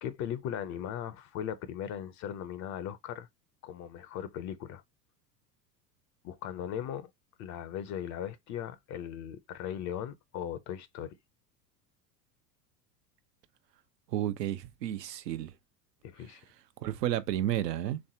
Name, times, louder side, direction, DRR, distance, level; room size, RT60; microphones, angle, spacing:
voice 1, 0.0-3.3 3.6-4.8 6.2-7.1 7.4-11.2 16.0-16.4, left 9 dB, 35° left, 0.6 m, -38 dB
voice 2, 14.1-15.5 16.8-18.0, right 12 dB, 75° right, 0.8 m, -31 dB
3.4 x 3.1 x 2.7 m
hypercardioid pair, 85°, 50 cm